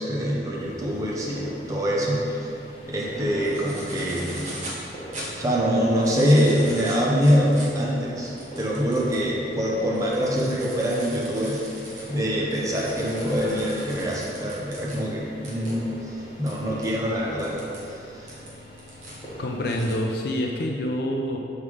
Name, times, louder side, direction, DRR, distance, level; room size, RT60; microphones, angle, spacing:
voice 1, 0.0-2.5 2.9-4.5 5.4-11.7 12.1-17.6 17.9-18.3, equal, 20° right, -4 dB, 0.8 m, -24 dB
sound 1, 0.5-19.9, equal, 30° left, 1.0 m, -40 dB
sound 2, 3.4-4.8 5.1-5.3 5.8-9.3 9.7-15.0 15.4-15.7 16.5-16.6 16.8-16.9 17.4-17.8 18.3-19.2 19.6-19.9, right 1 dB, 40° right, 1.2 m, -40 dB
voice 2, 19.4-21.4, left 1 dB, 55° left, 1 dB, 0.4 m, -26 dB
6.4 x 3.6 x 4.8 m, 2.7 s
head